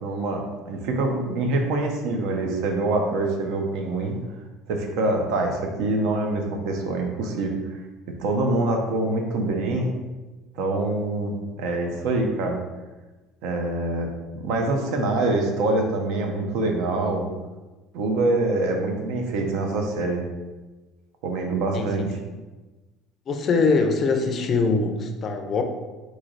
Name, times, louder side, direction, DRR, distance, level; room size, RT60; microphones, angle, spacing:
voice 1, 0.0-4.2 4.7-7.5 8.2-9.9 10.5-12.6 13.4-14.1 14.4-17.3 17.9-20.2 21.2-22.1, right 2 dB, 65° right, 3 dB, 0.7 m, -25 dB
voice 2, 21.7-22.1 23.3-25.6, left 4 dB, 30° left, 5 dB, 0.4 m, -23 dB
3.8 x 3.2 x 3.9 m, 1.2 s
cardioid pair, 165°, 0 cm